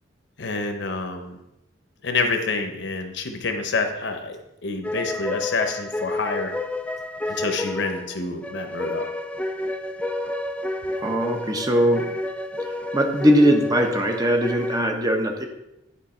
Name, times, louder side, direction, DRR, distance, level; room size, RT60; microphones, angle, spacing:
voice 1, 0.4-1.4 2.0-6.5 7.3-9.1, left 3 dB, 65° left, 6 dB, 0.8 m, -27 dB
sound 1, 4.8-14.8, left 2 dB, 5° left, 0.3 m, -30 dB
voice 2, 11.0-12.2 12.9-15.5, equal, 20° right, 3 dB, 0.8 m, -20 dB
9.8 x 3.5 x 4.3 m, 0.90 s
head